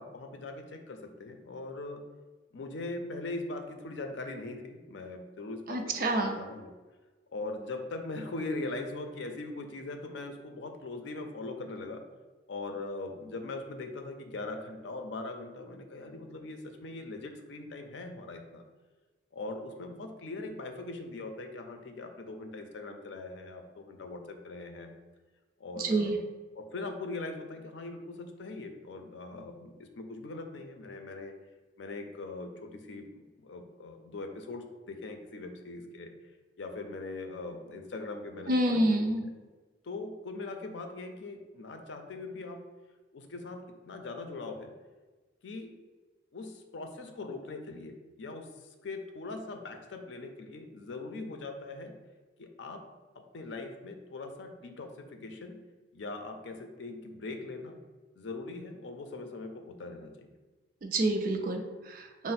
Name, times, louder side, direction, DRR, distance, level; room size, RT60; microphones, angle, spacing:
voice 1, 0.0-2.0 2.5-6.7 7.3-12.0 12.5-18.6 19.3-24.9 25.6-26.2 26.5-31.3 31.8-36.1 36.6-39.1 39.8-42.6 43.1-44.7 45.4-45.7 46.3-51.9 52.4-52.8 53.2-55.6 55.9-57.8 58.2-60.3 61.0-61.2, left 2 dB, 80° left, 5 dB, 0.5 m, -41 dB
voice 2, 5.7-6.4 25.8-26.2 38.5-39.2 60.8-62.3, right 1 dB, 50° right, 3 dB, 0.4 m, -28 dB
4.7 x 2.0 x 4.1 m, 1.3 s
head